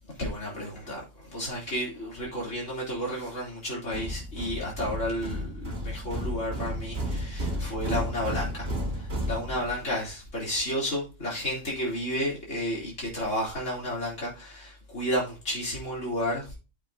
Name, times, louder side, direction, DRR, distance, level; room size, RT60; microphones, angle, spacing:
voice 1, 0.2-16.6, equal, 80° left, 3.7 m, -32 dB
sound 1, 3.9-9.9, equal, 50° right, 2.4 m, -33 dB
9.5 x 7.6 x 2.7 m
omnidirectional pair, 1.3 m